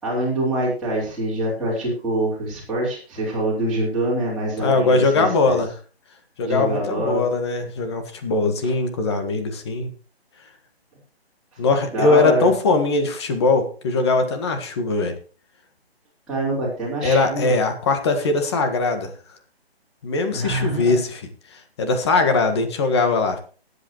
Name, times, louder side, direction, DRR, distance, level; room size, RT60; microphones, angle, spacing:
voice 1, 0.0-5.6 6.5-7.2 11.9-12.5 16.3-17.6 20.2-20.9, right 1 dB, ahead, -11 dB, 3.8 m, -25 dB
voice 2, 4.6-5.7 6.4-9.9 11.6-15.1 17.0-19.1 20.0-21.2 21.5-23.4, left 3 dB, 25° left, 6 dB, 1.6 m, -21 dB
20.5 x 8.2 x 3.1 m, 0.38 s
hypercardioid pair, 160°, 32 cm